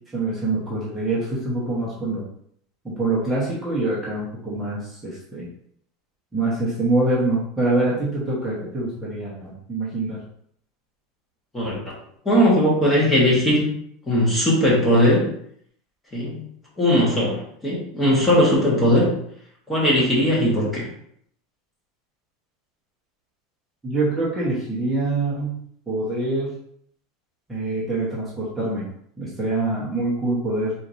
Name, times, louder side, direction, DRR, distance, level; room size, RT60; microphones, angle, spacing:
voice 1, 0.1-2.2 2.8-5.5 6.3-10.2 23.8-25.6 25.9-26.5 27.5-28.8 29.2-30.7, right 2 dB, 10° right, -8 dB, 1.0 m, -25 dB
voice 2, 12.2-13.7 14.1-15.2 16.1-16.4 16.8-19.1 19.7-20.9, equal, 10° left, -5 dB, 1.3 m, -19 dB
4.6 x 4.1 x 2.6 m, 0.67 s
supercardioid pair, 175°, 0 cm